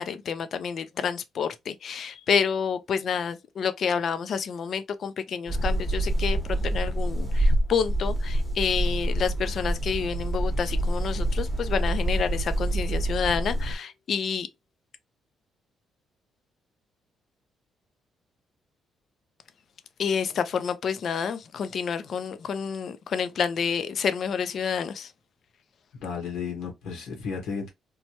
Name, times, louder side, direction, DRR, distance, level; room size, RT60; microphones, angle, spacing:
voice 1, 0.0-14.5 20.0-25.1, left 6 dB, 60° left, 0.4 m, -29 dB
sound 1, 5.5-13.8, right 1 dB, 5° right, 0.9 m, -26 dB
voice 2, 25.9-27.7, left 5 dB, 85° left, 1.0 m, -33 dB
3.1 x 2.2 x 2.8 m
cardioid pair, 90°, 0 cm